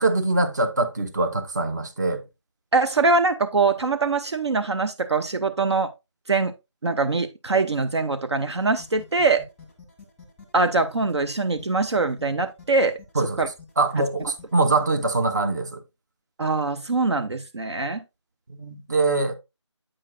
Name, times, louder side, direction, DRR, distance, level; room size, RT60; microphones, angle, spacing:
voice 1, 0.0-2.2 13.1-13.4 13.8-15.8 18.5-19.4, right 3 dB, 35° right, 0.9 m, -23 dB
voice 2, 2.7-5.9 6.3-6.5 6.8-9.5 10.5-13.0 13.4-13.5 16.4-18.0, right 3 dB, 60° right, 0.6 m, -23 dB
sound 1, 8.5-15.0, left 5 dB, ahead, 1.1 m, -48 dB
8.7 x 6.3 x 2.3 m
figure-of-eight pair, 165°, 16 cm